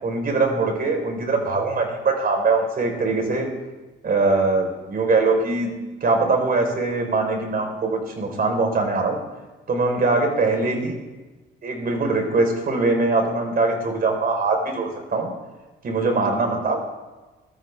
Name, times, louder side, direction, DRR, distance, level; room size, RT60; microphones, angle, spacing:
voice 1, 0.0-3.5 4.0-5.7 6.0-9.2 9.7-10.9 11.6-15.3 15.8-16.8, right 3 dB, 50° right, 3 dB, 4.2 m, -22 dB
22.0 x 13.5 x 3.5 m, 1.2 s
cardioid pair, 90°, 20 cm